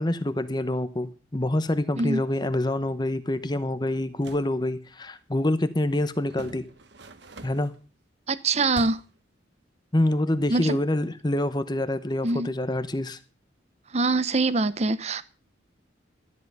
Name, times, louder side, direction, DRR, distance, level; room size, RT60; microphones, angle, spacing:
voice 1, 0.0-6.6 7.4-7.7 9.9-13.2, left 1 dB, 20° left, 0.8 m, -26 dB
sound 1, 4.0-4.5 6.3-7.8 8.7-9.2, right 2 dB, 60° right, 1.0 m, -43 dB
voice 2, 8.3-9.0 10.5-10.8 12.2-12.5 13.9-15.2, right 3 dB, 35° right, 0.7 m, -24 dB
13.0 x 10.0 x 5.4 m
head